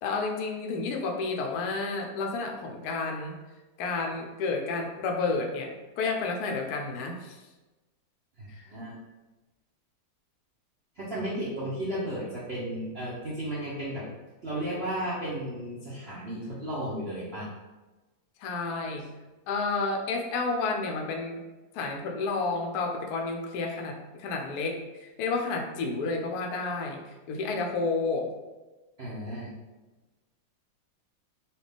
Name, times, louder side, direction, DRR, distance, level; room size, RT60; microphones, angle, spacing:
voice 1, 0.0-3.3 3.8-5.7 6.0-7.4 8.5-8.7 18.4-19.0 19.5-21.4 21.7-27.0 27.3-28.3, left 3 dB, 70° left, 2 dB, 1.0 m, -30 dB
voice 2, 8.4-8.9 11.0-14.0 14.4-17.5 29.0-29.5, right 1 dB, 55° right, -8 dB, 0.6 m, -34 dB
4.3 x 2.4 x 3.4 m, 1.1 s
omnidirectional pair, 2.1 m